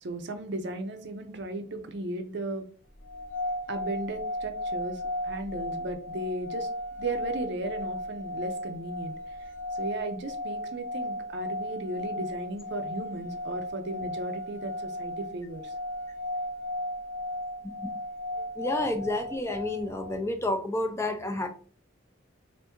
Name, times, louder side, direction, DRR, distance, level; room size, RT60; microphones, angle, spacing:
voice 1, 0.0-2.7 3.7-6.7 7.0-9.1 9.8-15.7, right 2 dB, 60° right, 7 dB, 0.5 m, -35 dB
sound 1, 3.0-20.2, left 1 dB, 75° left, 0.8 m, -35 dB
voice 2, 18.6-21.5, left 1 dB, 15° left, 6 dB, 0.4 m, -30 dB
3.4 x 2.5 x 2.9 m, 0.40 s
head